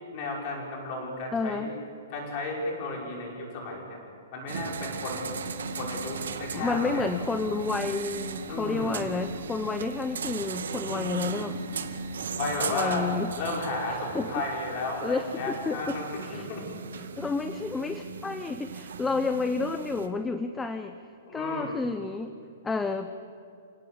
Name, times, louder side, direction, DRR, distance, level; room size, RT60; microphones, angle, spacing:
voice 1, 0.1-1.7 2.1-4.0 4.3-5.3 5.7-7.1 8.5-9.0 12.4-13.1 13.4-16.7 16.9-17.2 21.3-21.8, left 2 dB, 25° left, -2 dB, 5.7 m, -33 dB
voice 2, 1.3-1.7 6.5-11.6 12.7-13.3 14.1-14.3 15.0-15.8 16.2-16.5 17.2-21.0 21.3-22.3 22.6-23.1, left 4 dB, 5° left, 8 dB, 0.6 m, -30 dB
sound 1, 4.5-20.1, right 4 dB, 85° right, 2.1 m, -37 dB
28.5 x 17.5 x 8.7 m, 2.4 s
hypercardioid pair, 180°, 0 cm